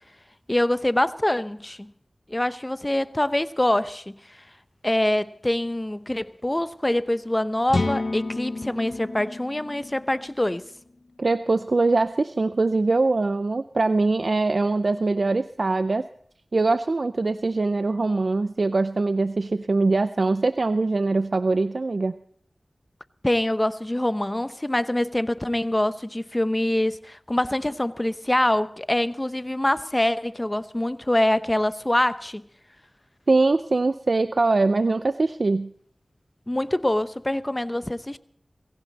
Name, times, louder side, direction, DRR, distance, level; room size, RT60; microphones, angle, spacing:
voice 1, 0.5-1.9 2.3-4.2 4.8-10.6 23.2-32.4 36.5-38.2, left 1 dB, 20° left, 0.8 m, -24 dB
sound 1, 7.7-11.5, left 2 dB, 65° left, 1.0 m, -31 dB
voice 2, 11.2-16.0 16.5-22.1 33.3-35.7, right 3 dB, 65° right, 0.5 m, -22 dB
18.5 x 16.5 x 4.1 m
wide cardioid pair, 50°, 0 cm